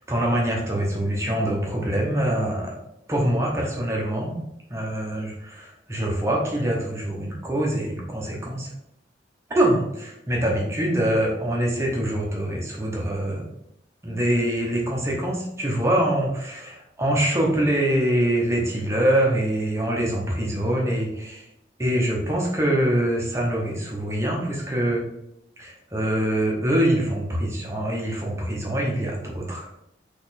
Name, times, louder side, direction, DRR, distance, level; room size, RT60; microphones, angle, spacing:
voice 1, 0.0-2.8 3.1-4.4 4.7-8.7 9.5-13.4 14.0-21.5 21.8-25.0 25.6-29.7, right 1 dB, 15° right, -2 dB, 0.7 m, -24 dB
4.1 x 2.9 x 4.1 m, 0.80 s
head